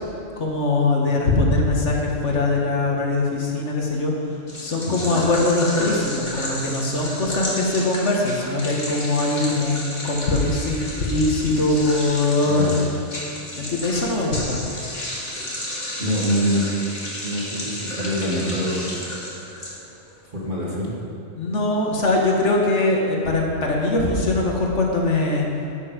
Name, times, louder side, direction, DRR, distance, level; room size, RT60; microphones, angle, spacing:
voice 1, 0.4-4.1 4.6-12.7 13.5-14.6 21.4-25.4, left 2 dB, 70° left, -1 dB, 1.9 m, -21 dB
sound 1, 4.5-20.1, left 1 dB, 35° left, 2.4 m, -32 dB
voice 2, 4.8-5.2 12.4-12.8 16.0-16.6 17.2-18.8 20.3-20.9, equal, 45° right, -5 dB, 2.5 m, -25 dB
12.0 x 9.5 x 5.2 m, 2.6 s
omnidirectional pair, 1.2 m